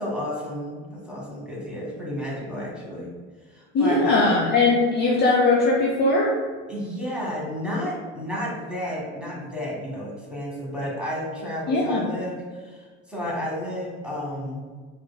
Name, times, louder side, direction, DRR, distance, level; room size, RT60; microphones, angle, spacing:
voice 1, 0.0-3.1 3.5-4.6 6.7-14.6, equal, 5° right, -5 dB, 1.3 m, -31 dB
voice 2, 3.7-6.3 11.7-12.1, left 3 dB, 30° left, -3 dB, 0.6 m, -20 dB
4.7 x 2.6 x 2.2 m, 1.5 s
hypercardioid pair, 70°, 35 cm